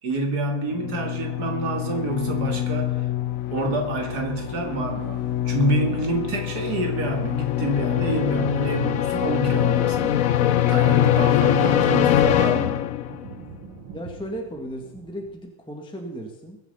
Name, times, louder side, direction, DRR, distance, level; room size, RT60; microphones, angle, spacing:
voice 1, 0.0-3.1 3.5-10.2 10.7-12.8, right 1 dB, 50° right, 3 dB, 2.8 m, -27 dB
sound 1, 0.7-13.3, left 11 dB, 80° left, 0.7 m, -23 dB
sound 2, 8.6-15.4, right 5 dB, 75° right, 2.2 m, -43 dB
voice 2, 13.9-16.6, equal, 5° left, 1 dB, 1.5 m, -35 dB
22.0 x 7.4 x 5.6 m, 0.92 s
omnidirectional pair, 2.2 m